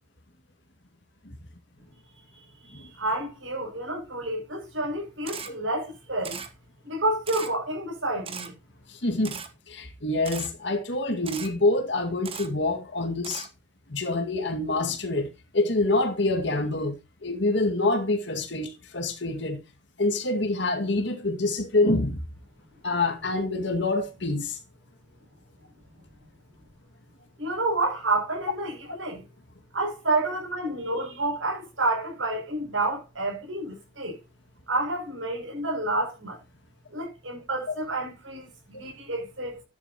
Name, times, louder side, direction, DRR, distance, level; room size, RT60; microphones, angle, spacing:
voice 1, 2.4-6.4 6.8-8.5 27.4-29.2 29.7-34.2 34.7-36.4 36.9-39.6, right 2 dB, 75° right, 6.7 m, -29 dB
Camera, 5.3-5.5 6.2-6.5 7.3-7.5 8.3-8.5 9.2-9.5 10.3-10.5 11.3-11.5 12.2-12.5 13.2-13.5, right 6 dB, 30° right, 1.3 m, -37 dB
voice 2, 8.9-9.4 9.7-13.5 13.9-15.3 15.5-19.6 20.0-22.2 22.8-24.6, left 2 dB, 60° left, 2.2 m, -26 dB
12.5 x 11.0 x 3.0 m
head